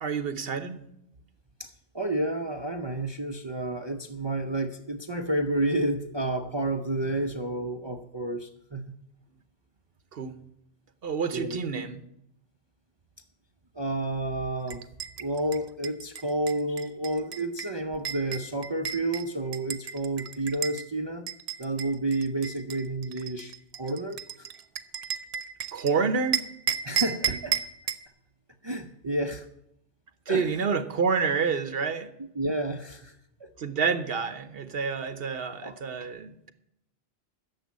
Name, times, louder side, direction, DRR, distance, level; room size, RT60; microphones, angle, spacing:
voice 1, 0.0-0.8 10.1-10.4 11.0-12.0 25.7-26.5 30.3-32.1 33.6-36.5, right 5 dB, 65° right, 11 dB, 1.1 m, -28 dB
voice 2, 1.6-8.8 11.3-11.6 13.7-14.8 15.2-21.3 21.6-24.5 26.8-27.6 28.6-29.5 30.3-30.6 32.4-33.2 33.4-33.5 35.6-35.7, right 1 dB, 30° right, 6 dB, 0.6 m, -30 dB
sound 1, 14.7-20.8 21.3-25.9 26.3-28.1, right 8 dB, 90° right, 1.0 m, -33 dB
10.5 x 7.2 x 9.4 m, 0.78 s
omnidirectional pair, 1.1 m